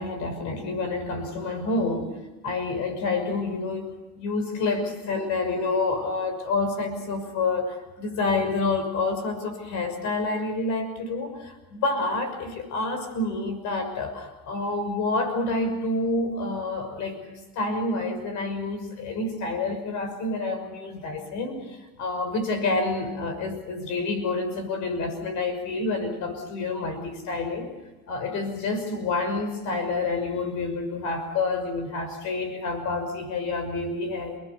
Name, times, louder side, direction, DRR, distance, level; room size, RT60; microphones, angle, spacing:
voice 1, 0.0-2.2 2.4-17.2 17.5-27.7 28.1-34.4, left 3 dB, 75° left, 8 dB, 6.1 m, -28 dB
29.0 x 20.0 x 7.0 m, 1.1 s
supercardioid pair, 80°, 30 cm